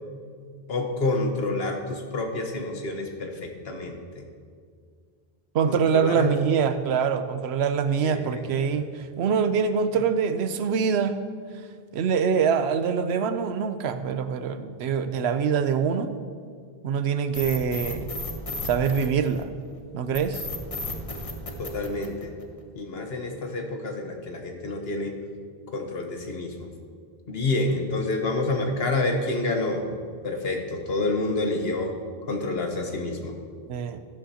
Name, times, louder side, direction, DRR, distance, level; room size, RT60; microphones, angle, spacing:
voice 1, 0.7-4.2 5.7-6.3 8.0-8.4 21.6-22.3 22.7-25.1 25.7-26.7 27.3-29.8 30.2-31.9 32.3-33.3, left 2 dB, 70° left, 3 dB, 1.3 m, -28 dB
voice 2, 5.5-8.9 9.2-11.2 11.9-16.1 16.8-18.1 18.6-19.5 19.9-20.4 33.7-34.0, right 6 dB, 85° right, 10 dB, 0.9 m, -24 dB
sound 1, 17.3-19.6 20.1-22.6, left 2 dB, 35° left, 1.1 m, -34 dB
13.0 x 11.5 x 2.8 m, 2.1 s
omnidirectional pair, 1.1 m